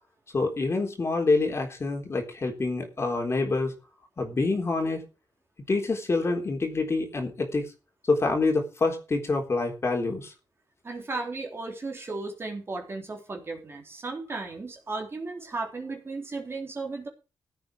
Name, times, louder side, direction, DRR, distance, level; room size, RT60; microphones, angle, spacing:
voice 1, 0.3-3.7 4.2-5.0 5.7-7.7 8.1-10.3, left 3 dB, 35° left, 2 dB, 3.8 m, -26 dB
voice 2, 10.8-17.1, right 3 dB, 30° right, 2 dB, 3.7 m, -35 dB
15.5 x 8.5 x 5.0 m, 0.31 s
wide cardioid pair, 130°, 8 cm